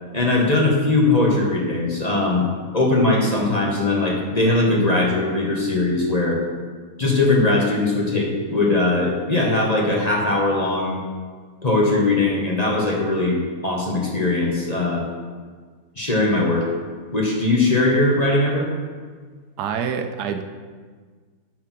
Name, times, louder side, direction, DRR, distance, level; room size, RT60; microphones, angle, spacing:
voice 1, 0.1-2.5 2.7-6.4 7.0-11.0 11.6-13.4 13.6-15.0 16.0-16.7 17.1-18.7, left 2 dB, 25° left, -3 dB, 1.4 m, -20 dB
voice 2, 19.6-20.4, right 7 dB, 80° right, 7 dB, 1.2 m, -26 dB
9.6 x 4.7 x 6.0 m, 1.6 s
omnidirectional pair, 1.7 m